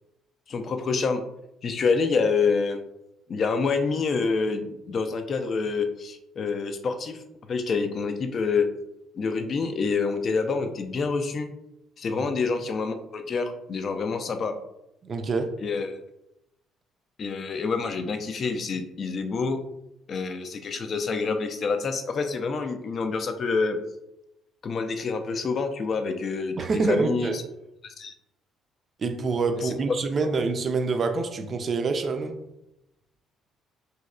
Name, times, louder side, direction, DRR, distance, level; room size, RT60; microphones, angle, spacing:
voice 1, 0.5-1.2 1.6-2.8 3.3-7.2 7.5-8.7 9.2-11.5 12.0-14.5 15.6-16.0 17.2-19.6 20.1-23.8 24.6-26.6 26.9-27.4 27.8-28.1 29.6-29.7 30.2-30.3, left 4 dB, 45° left, 0.4 m, -27 dB
voice 2, 15.0-15.5 26.6-27.4 29.0-32.4, right 4 dB, 40° right, 0.4 m, -26 dB
3.0 x 2.7 x 2.3 m
figure-of-eight pair, 50°, 0 cm